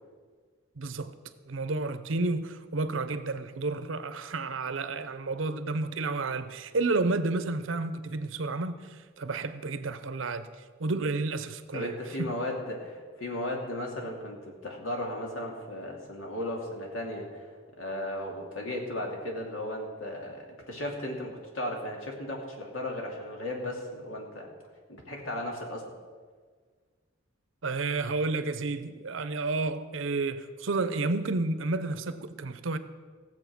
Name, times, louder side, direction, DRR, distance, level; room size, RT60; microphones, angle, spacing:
voice 1, 0.8-1.1 1.5-10.5 10.8-12.3 27.6-32.8, right 3 dB, 70° right, 0.7 m, -31 dB
voice 2, 11.7-17.5 17.8-24.5 24.9-25.8, left 1 dB, 80° left, 2.6 m, -35 dB
16.5 x 7.5 x 6.1 m
head